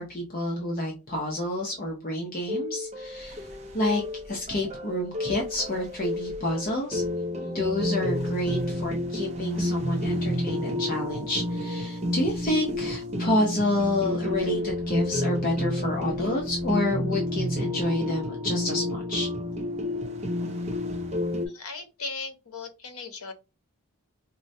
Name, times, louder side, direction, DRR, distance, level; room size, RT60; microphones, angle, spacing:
voice 1, 0.0-3.5 3.7-4.0 4.3-7.0 7.4-19.3, left 1 dB, 40° left, -1 dB, 0.6 m, -29 dB
sound 1, 2.5-21.5, left 1 dB, 30° right, 0.4 m, -30 dB
voice 2, 21.5-23.3, left 4 dB, 85° left, 7 dB, 0.7 m, -37 dB
4.3 x 2.1 x 2.6 m, 0.28 s
head